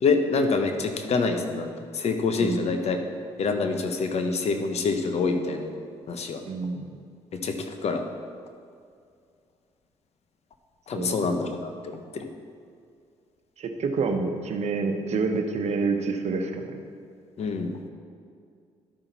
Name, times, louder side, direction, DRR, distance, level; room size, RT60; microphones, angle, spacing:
voice 1, 0.0-3.0 3.4-5.7 6.1-6.4 7.3-8.0 10.9-12.3 17.4-17.7, left 4 dB, 60° left, 6 dB, 0.9 m, -26 dB
voice 2, 6.4-6.9 10.9-11.2 13.6-16.7, right 4 dB, 60° right, 5 dB, 1.0 m, -27 dB
12.0 x 5.8 x 4.1 m, 2.3 s
supercardioid pair, 65°, 12 cm